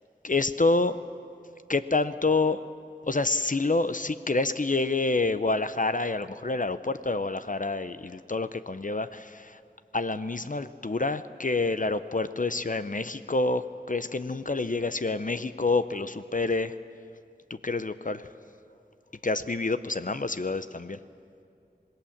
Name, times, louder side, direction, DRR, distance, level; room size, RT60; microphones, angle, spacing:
voice 1, 0.2-1.0 1.7-2.6 3.1-9.6 9.9-16.8 17.5-18.3 19.2-21.0, left 3 dB, 50° left, 11 dB, 0.6 m, -27 dB
26.0 x 19.0 x 7.2 m, 2.4 s
wide cardioid pair, 40°, 17 cm